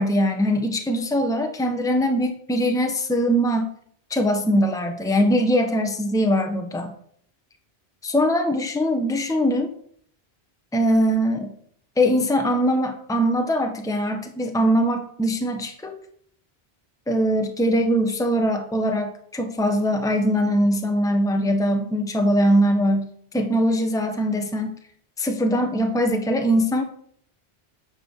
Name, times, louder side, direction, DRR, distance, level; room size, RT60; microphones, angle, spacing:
voice 1, 0.0-3.7 4.1-6.9 8.0-9.7 10.7-11.5 12.0-16.0 17.1-23.1 23.3-24.8 25.2-26.8, equal, 5° left, 5 dB, 1.1 m, -21 dB
11.0 x 6.1 x 7.2 m, 0.64 s
omnidirectional pair, 1.1 m